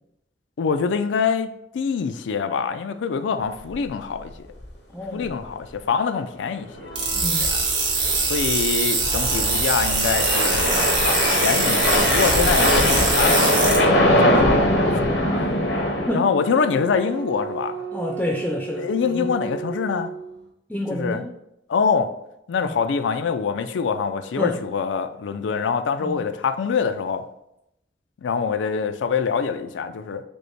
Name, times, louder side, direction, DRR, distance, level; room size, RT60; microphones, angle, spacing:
voice 1, 0.6-1.5 1.7-4.3 5.1-7.6 8.3-10.8 11.0-14.7 15.3-15.6 16.1-17.8 18.8-20.1 20.9-21.2 21.7-22.1 22.5-27.2 28.2-30.2, left 6 dB, 85° left, 0.4 m, -25 dB
sound 1, 3.7-3.9 4.2-4.3 4.6-4.7 5.2-5.5 6.8-16.1, left 1 dB, 65° left, 0.7 m, -21 dB
voice 2, 4.9-5.3 7.1-7.5 14.8-15.1 16.1-16.2 17.9-19.3 20.7-21.2 22.6-22.7 24.4-24.6 26.0-26.2, left 1 dB, 5° left, 0.4 m, -28 dB
sound 2, 6.7-20.5, right 3 dB, 65° right, 0.7 m, -36 dB
sound 3, 7.0-13.8, right 4 dB, 80° right, 1.4 m, -23 dB
5.2 x 2.1 x 4.5 m
head